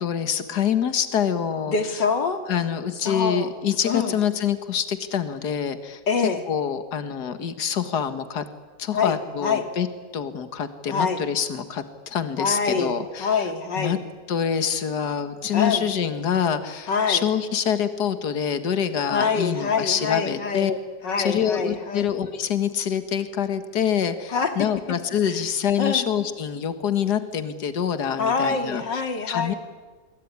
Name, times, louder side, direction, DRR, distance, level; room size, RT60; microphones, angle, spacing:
voice 1, 0.0-1.8 2.5-8.5 8.8-9.9 10.1-13.3 13.8-14.0 14.3-20.8 21.2-29.0 29.3-29.5, left 8 dB, 65° left, 11 dB, 2.1 m, -26 dB
voice 2, 1.7-2.4 2.9-3.5 3.9-4.2 6.1-6.4 8.9-9.6 10.9-11.2 12.4-14.0 15.5-15.9 16.9-17.2 19.1-20.7 21.0-22.1 24.3-24.5 25.2-25.4 25.8-26.1 28.2-29.6, left 5 dB, 85° left, 7 dB, 3.2 m, -25 dB
26.0 x 22.0 x 9.7 m, 1.4 s
omnidirectional pair, 1.9 m